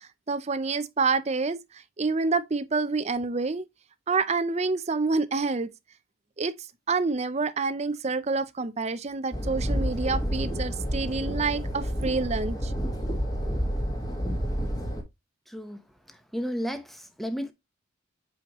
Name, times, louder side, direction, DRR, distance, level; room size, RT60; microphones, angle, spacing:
voice 1, 0.0-1.6 2.0-3.6 4.1-5.7 6.4-6.5 6.9-12.7, right 4 dB, 30° right, 0.5 m, -27 dB
sound 1, 9.3-15.0, equal, 20° left, 1.6 m, -29 dB
voice 2, 16.3-17.5, equal, ahead, 0.9 m, -32 dB
7.6 x 5.1 x 3.0 m
head